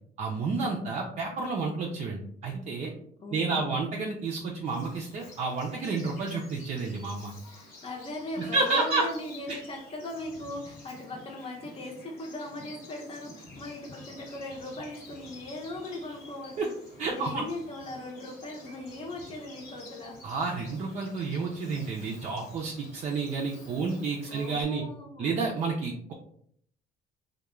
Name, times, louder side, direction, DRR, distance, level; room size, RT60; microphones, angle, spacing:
voice 1, 0.2-2.9 3.3-7.3 8.4-9.0 9.5-9.6 16.6-16.7 17.0-17.5 20.2-24.8 25.2-26.1, right 4 dB, 45° right, 0 dB, 0.4 m, -30 dB
voice 2, 3.2-3.8 7.5-16.7 17.1-20.2 24.3-25.4, left 1 dB, 35° left, 1 dB, 0.7 m, -39 dB
Bird vocalization bird call bird song, 4.7-24.6, left 2 dB, 55° left, 1.0 m, -50 dB
2.2 x 2.1 x 3.0 m, 0.66 s
cardioid pair, 110°, 17 cm